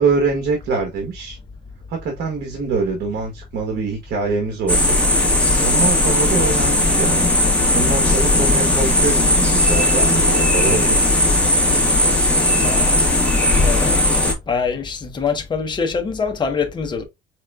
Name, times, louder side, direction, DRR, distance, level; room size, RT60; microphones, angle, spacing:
voice 1, 0.0-1.4 1.9-5.0 5.6-7.3 7.7-11.1, right 4 dB, 65° right, 1.2 m, -24 dB
sound 1, 4.7-14.3, left 1 dB, 5° left, 1.5 m, -17 dB
voice 2, 12.5-13.0 13.6-14.0 14.5-17.0, left 5 dB, 25° left, 0.9 m, -24 dB
4.8 x 3.0 x 2.3 m
cardioid pair, 125°, 18 cm